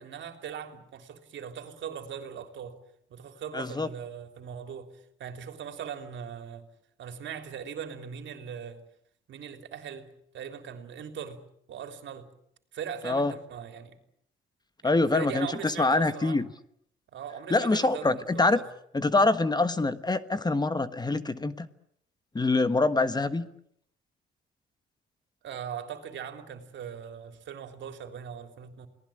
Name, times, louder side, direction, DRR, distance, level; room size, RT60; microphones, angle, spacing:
voice 1, 0.0-2.8 3.1-6.6 7.0-8.8 9.3-10.1 10.3-11.4 11.7-12.3 12.7-14.0 14.8-16.4 17.1-18.7 25.4-28.9, right 8 dB, 70° right, 3.5 m, -40 dB
voice 2, 3.5-3.9 13.0-13.3 14.8-16.4 17.5-18.6 18.9-21.7 22.3-23.5, left 2 dB, 20° left, 1.3 m, -25 dB
29.0 x 19.0 x 8.8 m
cardioid pair, 90°, 20 cm